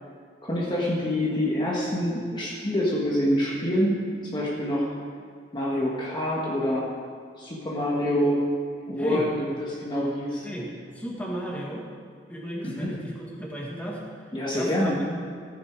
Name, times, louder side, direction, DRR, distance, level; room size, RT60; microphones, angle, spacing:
voice 1, 0.4-4.0 4.3-4.9 5.5-6.8 7.4-8.4 8.9-10.5 12.6-13.0 14.3-15.0, equal, 25° left, -5 dB, 1.7 m, -26 dB
voice 2, 10.9-11.8 12.3-14.0 14.5-15.2, right 1 dB, 10° left, -3 dB, 2.1 m, -34 dB
15.0 x 9.6 x 4.7 m, 2.2 s
head